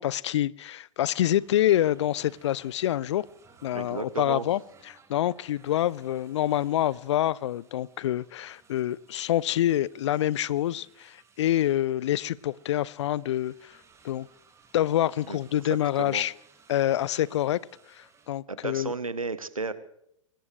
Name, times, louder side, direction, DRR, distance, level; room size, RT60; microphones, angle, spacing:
voice 1, 0.0-3.2 3.6-4.6 4.9-13.7 14.0-14.3 14.7-16.3 16.7-17.6 17.9-18.9, left 12 dB, 55° left, 0.5 m, -26 dB
sound 1, 1.2-18.3, right 5 dB, 15° right, 1.9 m, -60 dB
voice 2, 3.7-4.5 15.3-15.4 16.0-16.3 17.1-17.2 18.5-19.7, right 4 dB, 90° right, 1.1 m, -33 dB
23.0 x 19.0 x 3.3 m
figure-of-eight pair, 105°, 17 cm